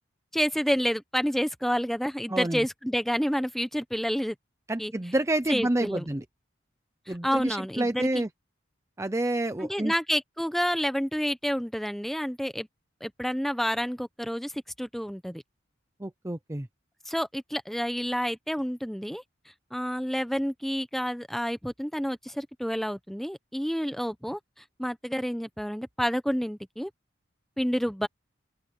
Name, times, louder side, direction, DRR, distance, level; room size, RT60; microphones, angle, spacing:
voice 1, 0.3-4.4 4.8-4.9 5.5-6.1 7.1-8.3 9.6-12.7 13.0-15.4 17.1-19.2 19.7-24.4 24.8-26.9 27.6-28.1, equal, ahead, 1.0 m, -29 dB
voice 2, 2.3-2.6 4.7-6.2 7.1-8.3 9.0-9.9 16.0-16.7, right 1 dB, 15° right, 0.7 m, -28 dB
open air
head